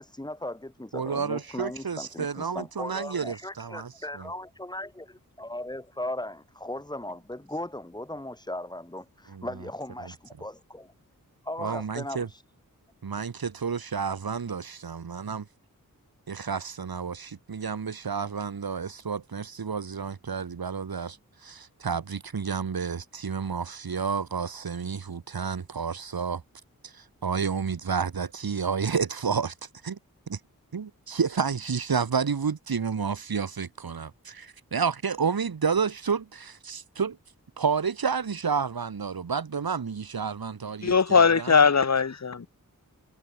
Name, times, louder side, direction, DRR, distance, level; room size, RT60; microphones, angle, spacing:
voice 1, 0.0-10.9 11.4-12.4, left 1 dB, 10° left, 1.7 m, -37 dB
voice 2, 0.9-4.3 9.3-9.5 10.0-10.1 11.6-12.3 13.0-15.4 16.3-26.4 26.8-29.5 29.8-30.0 30.3-30.4 30.7-37.2 37.6-41.6, right 6 dB, 85° right, 2.7 m, -30 dB
voice 3, 40.8-42.5, left 5 dB, 50° left, 1.4 m, -20 dB
wide cardioid pair, 55°, 35 cm